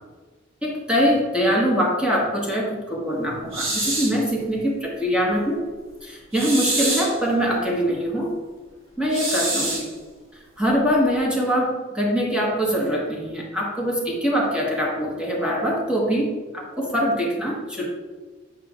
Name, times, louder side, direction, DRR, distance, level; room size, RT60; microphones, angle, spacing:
voice 1, 0.6-5.6 6.0-8.4 9.0-9.9 10.6-17.9, equal, 5° right, -3 dB, 1.2 m, -23 dB
sound 1, 3.5-4.2 6.3-7.2 9.1-9.9, right 2 dB, 65° right, 1.7 m, -25 dB
8.1 x 5.1 x 2.4 m, 1.4 s
head